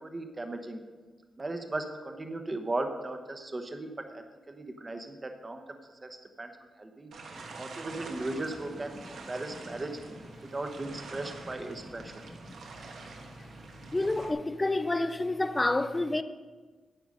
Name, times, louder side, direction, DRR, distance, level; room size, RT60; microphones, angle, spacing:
voice 1, 0.0-0.8 1.4-6.1 6.4-6.5 6.8-7.1 7.6-9.9 10.5-12.1, right 2 dB, 20° right, 0.9 m, -37 dB
sound 1, 7.1-14.3, right 3 dB, 65° right, 1.2 m, -46 dB
voice 2, 13.9-16.2, left 2 dB, 15° left, 0.4 m, -28 dB
9.7 x 8.8 x 5.3 m
wide cardioid pair, 155°, 0 cm